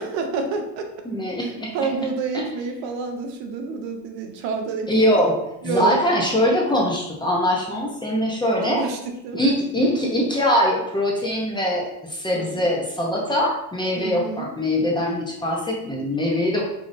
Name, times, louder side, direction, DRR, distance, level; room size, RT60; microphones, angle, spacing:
voice 1, 0.0-0.9 1.4-5.2 5.6-6.0 8.6-9.0 9.2-9.5 12.3-12.6 14.0-14.5, right 4 dB, 70° right, 4 dB, 0.8 m, -28 dB
voice 2, 1.0-1.7 2.3-2.5 4.9-5.4 5.6-8.9 9.3-16.7, equal, 10° left, -3 dB, 0.6 m, -22 dB
4.8 x 2.7 x 2.6 m, 0.82 s
cardioid pair, 125°, 46 cm